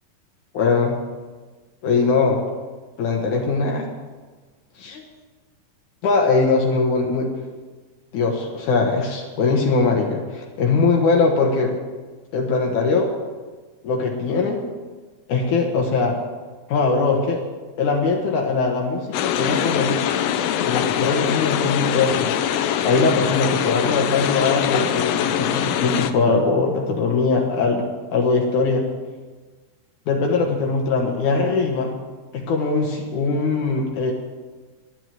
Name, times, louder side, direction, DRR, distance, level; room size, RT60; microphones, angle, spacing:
voice 1, 0.5-1.0 1.8-2.4 3.0-3.9 4.8-5.0 6.0-7.3 8.1-11.7 12.3-13.1 13.8-14.6 15.3-16.2 16.7-17.4 17.8-19.9 20.6-22.3 22.8-28.9 30.1-31.9 32.3-34.1, left 4 dB, 70° left, 1 dB, 2.6 m, -21 dB
sound 1, 19.1-26.1, left 9 dB, 90° left, 1.4 m, -23 dB
11.5 x 10.5 x 7.4 m, 1.3 s
omnidirectional pair, 3.7 m